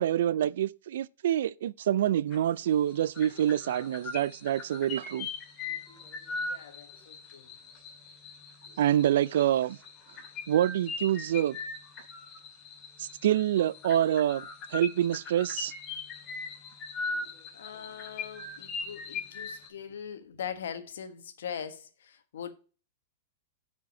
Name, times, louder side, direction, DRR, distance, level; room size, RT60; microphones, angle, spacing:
voice 1, 0.0-5.3 8.8-9.8 10.5-11.6 13.0-15.7, right 11 dB, 75° right, 0.3 m, -26 dB
sound 1, 2.3-2.6 2.9-19.7, left 3 dB, 30° left, 2.4 m, -40 dB
voice 2, 6.4-7.5 17.5-22.5, left 8 dB, 80° left, 1.3 m, -41 dB
6.3 x 5.1 x 6.7 m
hypercardioid pair, 130°, 0 cm